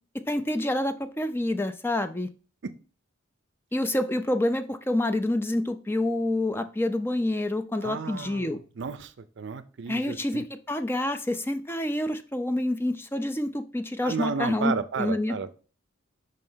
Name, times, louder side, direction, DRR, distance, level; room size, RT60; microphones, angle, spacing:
voice 1, 0.3-2.3 3.7-8.6 9.9-15.5, left 1 dB, 10° left, 9 dB, 0.4 m, -27 dB
voice 2, 7.8-10.4 14.0-15.5, right 5 dB, 60° right, 12 dB, 0.5 m, -33 dB
5.4 x 3.3 x 5.5 m, 0.37 s
head